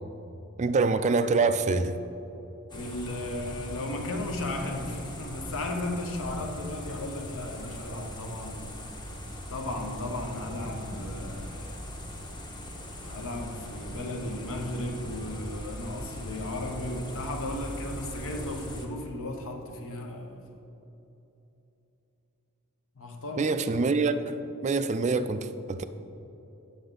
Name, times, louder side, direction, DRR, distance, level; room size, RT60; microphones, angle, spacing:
voice 1, 0.6-2.0 23.4-25.8, right 4 dB, 30° right, 11 dB, 0.3 m, -25 dB
voice 2, 2.7-8.7 9.5-11.7 13.0-20.4 23.0-23.6, left 1 dB, 65° left, 3 dB, 1.0 m, -35 dB
sound 1, 2.7-18.9, equal, 20° left, 0.9 m, -40 dB
9.5 x 7.0 x 3.8 m, 3.0 s
head